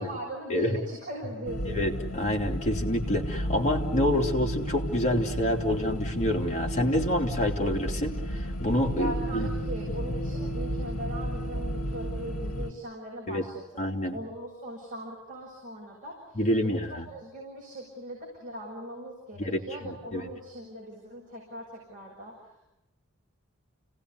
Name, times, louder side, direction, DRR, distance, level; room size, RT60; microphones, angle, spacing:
voice 1, 0.0-1.8 9.0-13.5 14.1-22.3, right 1 dB, 40° right, -3 dB, 7.0 m, -40 dB
sound 1, 1.4-12.7, equal, 75° left, 1.8 m, -32 dB
voice 2, 1.7-9.5 13.3-13.4 13.8-14.2 16.3-17.1 19.4-20.2, left 1 dB, 35° left, 0 dB, 3.3 m, -28 dB
30.0 x 18.5 x 9.8 m, 0.93 s
head